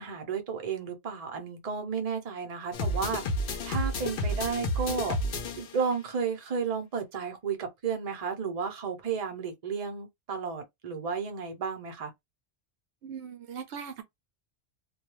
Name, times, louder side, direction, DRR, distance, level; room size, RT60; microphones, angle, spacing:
voice 1, 0.0-3.2 3.5-5.2 5.6-12.1, right 6 dB, 40° right, 0.7 m, -33 dB
sound 1, 2.7-5.9, left 1 dB, 60° left, 0.7 m, -31 dB
voice 2, 13.0-14.0, right 7 dB, 75° right, 0.8 m, -40 dB
2.3 x 2.2 x 3.0 m
omnidirectional pair, 1.2 m